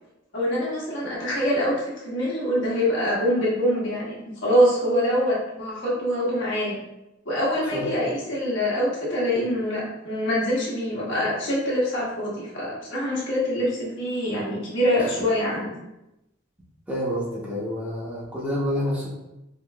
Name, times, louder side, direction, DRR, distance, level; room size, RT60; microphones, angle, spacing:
voice 1, 0.3-4.1 4.4-6.8 7.2-15.7, equal, 65° left, -6 dB, 1.3 m, -24 dB
voice 2, 16.9-19.1, equal, 10° right, -8 dB, 1.0 m, -28 dB
4.8 x 3.0 x 2.3 m, 0.92 s
head